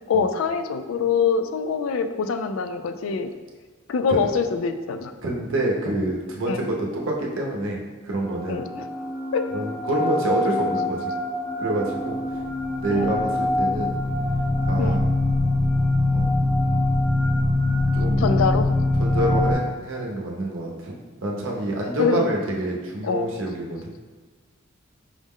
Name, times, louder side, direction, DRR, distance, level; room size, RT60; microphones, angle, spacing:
voice 1, 0.1-3.3 3.9-5.1 6.5-6.7 8.5-8.9 9.3-9.5 12.9-13.2 14.8-15.0 18.2-18.7 22.0-22.2 23.0-23.3, left 5 dB, 75° left, 8 dB, 0.3 m, -24 dB
voice 2, 5.2-8.6 9.5-11.1 11.6-12.2 12.8-13.9 14.7-15.0 16.1-16.3 17.9-18.2 19.0-23.9, right 1 dB, 70° right, -1 dB, 0.7 m, -27 dB
sound 1, 8.2-19.5, left 2 dB, ahead, 0.8 m, -23 dB
4.8 x 2.1 x 3.6 m, 1.4 s
head